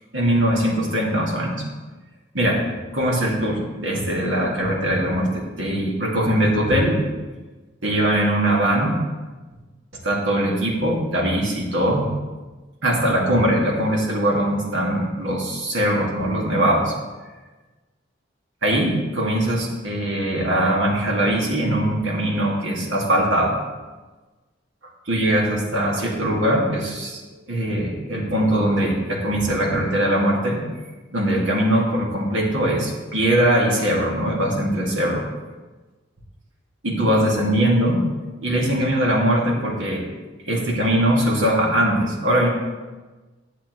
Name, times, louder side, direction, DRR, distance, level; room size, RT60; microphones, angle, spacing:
voice 1, 0.1-1.6 2.3-2.6 2.9-7.0 7.8-9.0 10.0-12.1 12.8-16.9 18.6-23.5 25.1-27.2 27.5-30.6 31.1-35.2 36.8-38.0 38.4-40.0 40.5-42.5, right 1 dB, 80° right, -2 dB, 2.0 m, -21 dB
11.5 x 7.3 x 3.1 m, 1.3 s
head